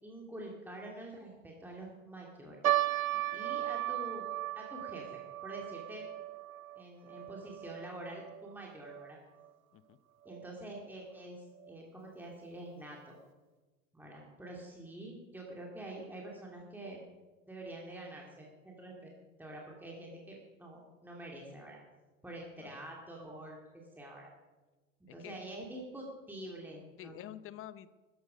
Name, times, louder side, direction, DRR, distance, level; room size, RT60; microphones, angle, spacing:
voice 1, 0.0-2.8 3.3-4.3 4.6-6.1 6.8-9.2 10.2-13.1 13.9-17.0 17.5-19.1 19.4-21.8 22.2-24.3 25.1-27.2, right 1 dB, 5° right, -2 dB, 2.6 m, -46 dB
sound 1, 2.6-9.1 9.4-9.5 10.3-10.5 11.1-11.2 11.6-11.8, right 14 dB, 85° right, 0.7 m, -36 dB
voice 2, 27.0-27.9, left 12 dB, 30° left, 15 dB, 0.7 m, -48 dB
14.0 x 11.0 x 5.2 m, 1.2 s
figure-of-eight pair, 80°, 41 cm